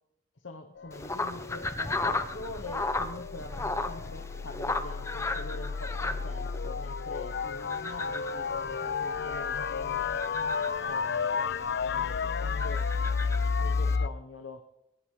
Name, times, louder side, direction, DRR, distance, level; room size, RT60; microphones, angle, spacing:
voice 1, 0.4-10.1 10.8-12.9 13.6-14.6, left 2 dB, 70° left, 5 dB, 1.0 m, -44 dB
sound 1, 0.8-14.1, left 5 dB, 55° left, 0.4 m, -32 dB
sound 2, 0.9-14.0, left 2 dB, 15° left, 0.7 m, -36 dB
21.0 x 17.5 x 3.3 m, 0.89 s
head